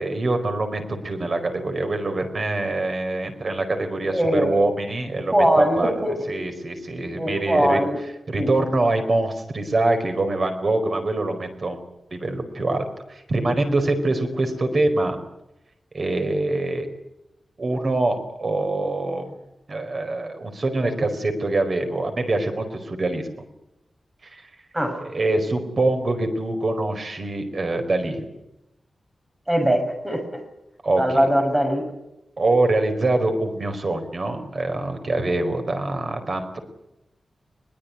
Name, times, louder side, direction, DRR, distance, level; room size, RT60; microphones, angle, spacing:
voice 1, 0.0-5.9 6.3-7.8 8.3-11.8 12.1-15.2 15.9-16.9 17.6-19.3 19.7-23.3 24.2-24.5 25.0-28.3 30.8-31.3 32.4-36.6, right 2 dB, 40° right, 7 dB, 4.7 m, -24 dB
voice 2, 4.1-4.6 5.3-6.2 7.2-8.0 8.3-8.6 24.7-25.0 29.5-30.4 31.0-31.9, equal, 15° right, 4 dB, 6.7 m, -21 dB
22.5 x 21.0 x 9.7 m, 0.88 s
wide cardioid pair, 170°, 0 cm